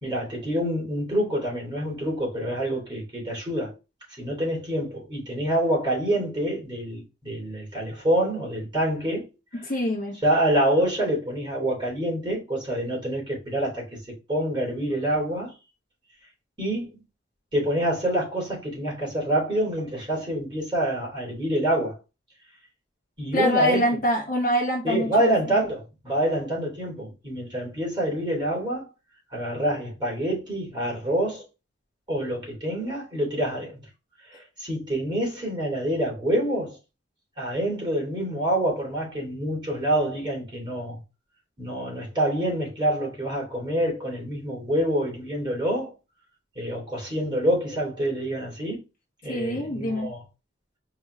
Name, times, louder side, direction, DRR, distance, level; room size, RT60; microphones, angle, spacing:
voice 1, 0.0-3.7 4.2-9.3 9.5-9.7 10.2-13.9 14.3-15.5 16.6-17.0 17.5-22.0 23.2-23.8 24.8-28.9 29.3-31.4 32.1-33.9 34.3-36.8 37.4-41.0 41.6-45.9 46.5-48.8 49.2-50.2, right 1 dB, 25° right, 2.9 m, -26 dB
voice 2, 9.6-10.2 23.3-25.3 49.3-50.1, left 1 dB, 45° left, 1.1 m, -24 dB
4.8 x 3.1 x 3.2 m
head